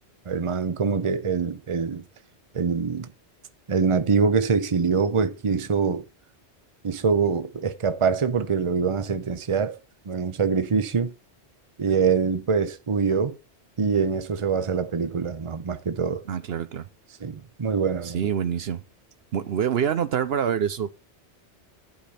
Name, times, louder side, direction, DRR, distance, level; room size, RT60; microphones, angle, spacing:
voice 1, 0.3-2.0 2.5-3.1 3.7-6.0 6.8-9.7 10.1-11.1 11.8-13.3 13.8-16.2 17.2-18.2, right 5 dB, 30° right, 0.8 m, -24 dB
voice 2, 16.3-16.8 18.0-18.8 19.3-20.9, right 8 dB, 65° right, 0.9 m, -26 dB
11.5 x 5.2 x 5.6 m
omnidirectional pair, 1.1 m